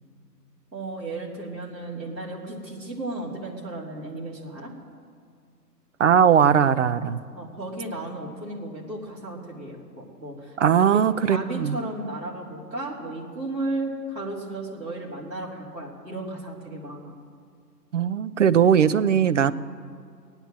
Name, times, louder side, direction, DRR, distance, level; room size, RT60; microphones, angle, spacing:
voice 1, 0.7-4.7 7.3-17.1, right 2 dB, 90° right, -4 dB, 3.5 m, -34 dB
voice 2, 6.0-7.2 10.6-11.8 17.9-19.5, right 8 dB, 50° right, 14 dB, 0.6 m, -19 dB
19.0 x 9.0 x 7.7 m, 2.2 s
figure-of-eight pair, 130°, 49 cm